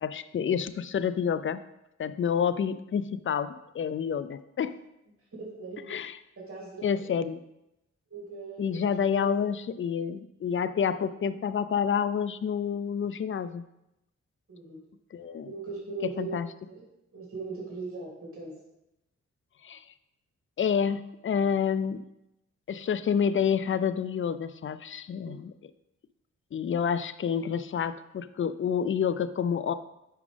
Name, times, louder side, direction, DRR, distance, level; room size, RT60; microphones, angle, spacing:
voice 1, 0.0-1.6 2.0-4.8 5.9-6.2 6.8-7.4 8.6-13.6 15.1-15.5 16.2-16.5 19.6-19.8 20.6-22.0 22.7-25.5 26.5-29.7, left 7 dB, 45° left, 13 dB, 0.5 m, -28 dB
voice 2, 5.3-5.9 6.4-6.9 8.1-9.4 14.5-14.8 15.4-16.4 16.7-16.9 17.1-18.5 25.2-25.3, right 4 dB, 45° right, -4 dB, 2.8 m, -39 dB
8.6 x 5.0 x 3.4 m, 0.88 s
cardioid pair, 55°, 30 cm